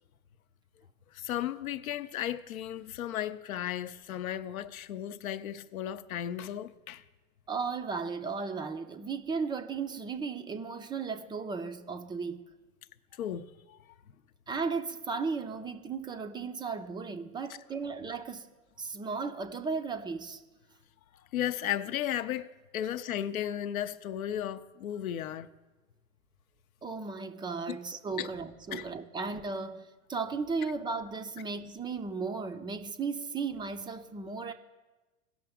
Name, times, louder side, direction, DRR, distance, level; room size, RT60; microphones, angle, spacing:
voice 1, 1.1-7.0 13.1-13.8 21.3-25.5 27.7-27.8 28.2-28.3 28.7-28.9, left 11 dB, 85° left, 0.6 m, -35 dB
voice 2, 7.5-12.5 14.5-18.5 18.8-20.4 26.8-34.5, right 4 dB, 10° right, 0.3 m, -35 dB
17.5 x 6.0 x 3.5 m
hypercardioid pair, 100°, 41 cm